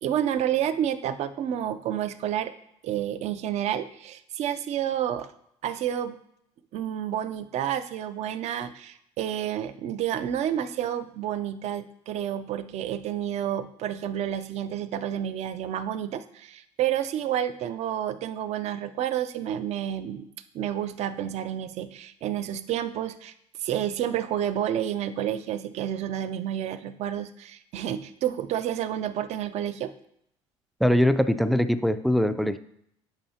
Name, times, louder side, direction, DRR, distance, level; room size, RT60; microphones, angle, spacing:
voice 1, 0.0-2.5 2.8-5.3 5.6-6.2 6.7-20.3 20.5-23.3 23.6-29.9, right 10 dB, 55° right, 12 dB, 0.5 m, -30 dB
voice 2, 30.8-32.6, equal, ahead, 11 dB, 0.3 m, -22 dB
8.9 x 5.4 x 2.8 m, 0.73 s
supercardioid pair, 100°, 13 cm